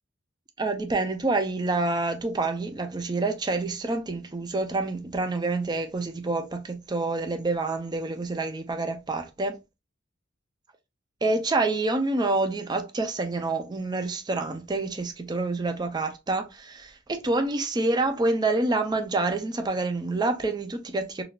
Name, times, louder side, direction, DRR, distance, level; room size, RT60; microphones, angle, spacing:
voice 1, 0.6-9.6 11.2-21.2, right 2 dB, 20° right, 0.4 m, -27 dB
3.6 x 2.3 x 2.3 m
head